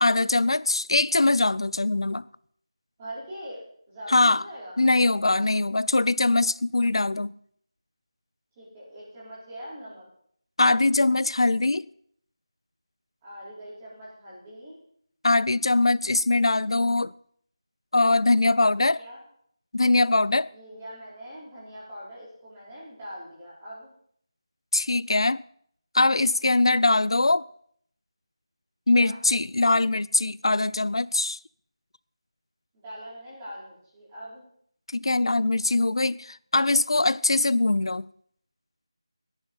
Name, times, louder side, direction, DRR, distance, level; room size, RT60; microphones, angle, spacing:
voice 1, 0.0-2.2 4.1-4.4 4.8-7.3 10.6-11.9 15.2-17.1 17.9-19.0 19.7-20.5 24.7-25.4 25.9-27.4 28.9-31.4 34.9-38.1, left 2 dB, 70° left, 0.5 m, -22 dB
voice 2, 3.0-4.8 8.6-10.0 13.2-14.8 19.0-19.2 20.5-23.9 28.9-29.2 32.7-34.4, equal, 15° right, 4.7 m, -42 dB
15.0 x 10.5 x 5.5 m
figure-of-eight pair, 175°, 3 cm